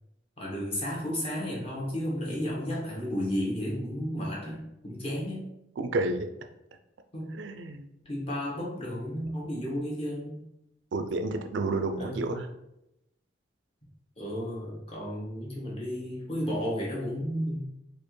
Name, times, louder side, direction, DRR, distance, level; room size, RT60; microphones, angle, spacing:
voice 1, 0.4-5.5 7.1-7.4 8.0-10.4 12.0-12.4 14.2-17.6, equal, 30° left, -4 dB, 1.1 m, -33 dB
voice 2, 5.8-6.3 7.4-7.9 10.9-12.5, right 2 dB, 75° right, 7 dB, 0.4 m, -30 dB
4.3 x 2.5 x 3.1 m, 0.85 s
head